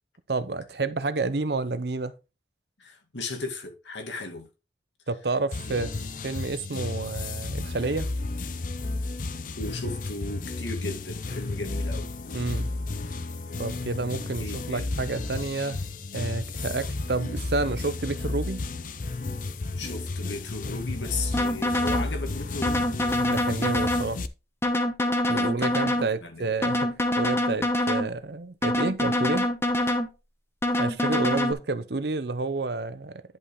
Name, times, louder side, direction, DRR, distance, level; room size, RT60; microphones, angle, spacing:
voice 1, 0.3-2.1 5.1-5.9 6.2-8.1 12.3-12.7 13.6-15.8 16.1-18.6 23.3-24.2 25.3-29.5 30.8-33.2, right 3 dB, 65° right, 0.7 m, -29 dB
voice 2, 2.8-4.5 5.7-5.8 9.6-12.1 14.4-15.0 16.8-16.9 19.8-22.9 25.3-26.5, left 3 dB, 90° left, 2.3 m, -36 dB
sound 1, 5.5-24.3, left 2 dB, 45° left, 0.6 m, -33 dB
sound 2, 21.3-22.1 22.6-24.1 24.6-26.1 26.6-28.1 28.6-30.1 30.6-31.5, left 1 dB, 15° left, 1.0 m, -25 dB
10.5 x 5.4 x 3.7 m
head